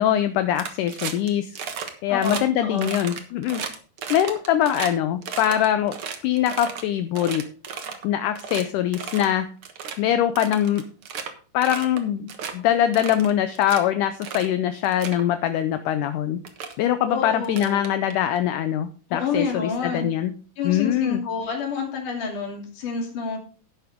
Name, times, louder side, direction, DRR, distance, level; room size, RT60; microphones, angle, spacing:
voice 1, 0.0-1.6 2.0-3.6 4.1-6.0 6.2-7.4 8.0-9.5 10.0-10.8 11.5-16.4 16.8-20.3 20.6-21.2, left 11 dB, 80° left, 10 dB, 1.9 m, -23 dB
sound 1, 0.5-1.3 1.5-1.9 2.2-2.4 2.8-4.9 5.2-6.8 7.1-8.0 8.3-8.6 8.9-9.3 9.6-9.9 10.3-11.3 11.6-12.0 12.3-12.5 12.9-13.8 14.2-14.5 14.8-15.2 16.0-16.1 16.4-16.7 17.4-18.4, right 6 dB, 55° right, 1.6 m, -34 dB
voice 2, 2.1-2.9 17.1-17.8 19.1-20.1 20.6-23.4, left 5 dB, 60° left, 1 dB, 4.2 m, -28 dB
11.5 x 10.5 x 3.6 m, 0.38 s
omnidirectional pair, 4.2 m